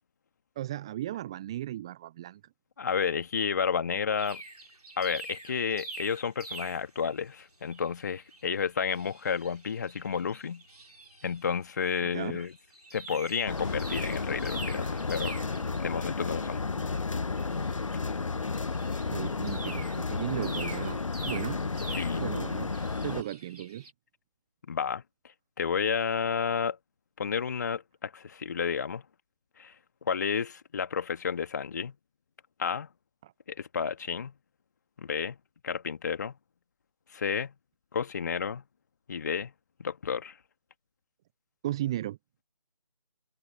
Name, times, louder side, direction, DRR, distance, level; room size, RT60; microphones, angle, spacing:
voice 1, 0.6-2.4 12.1-12.5 19.1-21.0 21.2-21.6 22.2-22.7 23.0-23.9 33.2-33.3 41.6-42.2, right 13 dB, 10° right, 0.8 m, -35 dB
voice 2, 2.8-4.4 5.0-10.6 11.2-12.5 12.9-15.4 15.8-16.6 21.9-22.2 24.7-25.0 25.6-26.8 27.2-29.0 29.6-29.7 30.0-32.0 32.6-32.9 33.5-34.3 35.0-35.4 35.6-36.4 37.1-37.5 37.9-38.6 39.1-39.5 39.8-40.4, left 6 dB, 30° left, 2.2 m, -31 dB
sound 1, 4.2-7.2 7.7-7.9 8.2-11.5 11.8-12.0 12.4-23.9, right 2 dB, 75° right, 3.2 m, -45 dB
sound 2, 13.5-23.2, left 4 dB, 55° left, 0.7 m, -32 dB
figure-of-eight pair, 160°, 20 cm